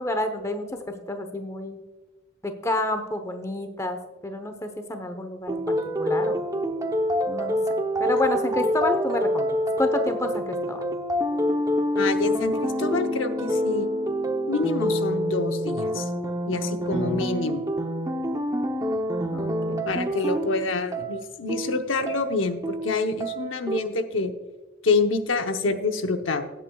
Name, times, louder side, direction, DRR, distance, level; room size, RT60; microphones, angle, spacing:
voice 1, 0.0-1.8 2.4-6.4 7.3-7.6 8.0-10.8 19.3-19.8, left 1 dB, 15° left, 7 dB, 0.9 m, -29 dB
sound 1, 5.5-23.8, equal, 20° right, 0.8 m, -26 dB
voice 2, 12.0-13.9 14.5-16.1 16.5-17.6 19.9-22.6 22.8-24.3 24.8-26.4, left 3 dB, 80° left, 7 dB, 0.8 m, -27 dB
17.0 x 8.4 x 2.3 m, 1.2 s
head